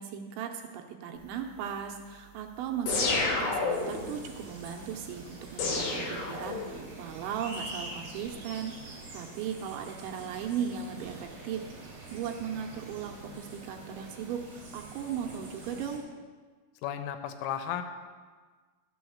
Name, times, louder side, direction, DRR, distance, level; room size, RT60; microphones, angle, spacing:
voice 1, 0.0-16.1, right 8 dB, 85° right, 3 dB, 2.9 m, -37 dB
sound 1, 2.9-4.1 5.6-6.9, left 3 dB, 60° left, 3.3 m, -29 dB
sound 2, 3.7-16.0, right 2 dB, 30° right, 3.2 m, -45 dB
voice 2, 16.8-17.8, left 9 dB, 85° left, 8 dB, 3.3 m, -34 dB
12.5 x 7.1 x 7.1 m, 1.5 s
omnidirectional pair, 5.7 m